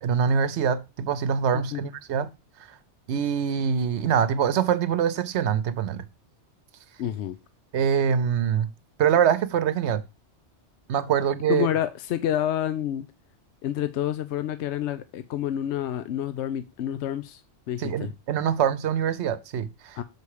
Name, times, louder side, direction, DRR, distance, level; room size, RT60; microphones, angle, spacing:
voice 1, 0.0-2.3 3.1-6.1 7.7-8.7 9.0-10.0 10.9-11.7 17.8-20.0, right 8 dB, 75° right, 1.0 m, -24 dB
voice 2, 7.0-7.4 11.5-13.1 13.6-17.4 17.7-18.1 20.0-20.1, left 11 dB, 75° left, 0.9 m, -28 dB
6.8 x 4.6 x 4.8 m
omnidirectional pair, 1.2 m